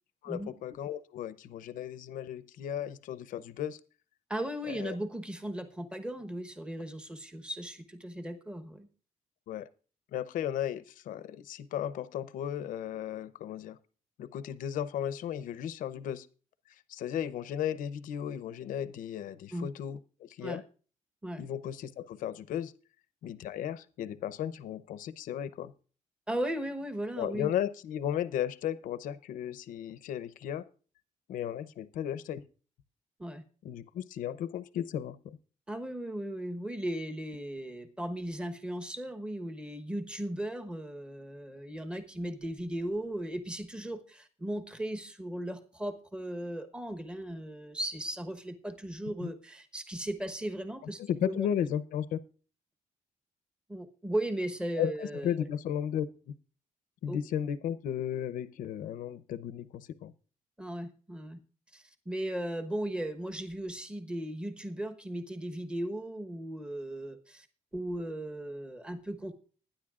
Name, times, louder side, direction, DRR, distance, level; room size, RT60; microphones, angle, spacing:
voice 1, 0.2-3.8 4.7-5.0 9.5-9.7 10.1-13.8 14.2-16.3 16.7-20.6 21.4-22.7 23.2-25.7 27.2-30.7 31.3-32.4 33.6-35.4 49.2-49.3 51.0-52.2 54.8-56.3 57.0-60.1, left 10 dB, 75° left, 15 dB, 0.7 m, -35 dB
voice 2, 4.3-8.9 19.5-19.7 20.4-20.6 21.2-21.5 26.3-27.5 33.2-33.4 35.7-51.5 53.7-55.4 57.1-57.2 60.6-61.4 61.7-67.5 67.7-69.3, right 1 dB, 5° right, 7 dB, 1.1 m, -37 dB
20.5 x 10.0 x 2.4 m, 0.38 s
cardioid pair, 175°, 14 cm